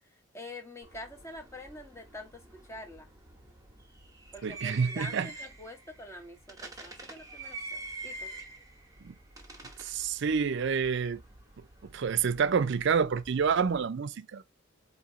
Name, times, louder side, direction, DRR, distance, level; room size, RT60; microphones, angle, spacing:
voice 1, 0.3-3.1 4.3-8.3, left 1 dB, 15° left, 1.1 m, -46 dB
sound 1, 0.8-13.9, right 3 dB, 15° right, 1.1 m, -47 dB
voice 2, 4.4-5.3 9.0-9.1 9.8-11.2 11.9-14.4, right 6 dB, 60° right, 0.4 m, -28 dB
4.4 x 2.7 x 3.9 m
head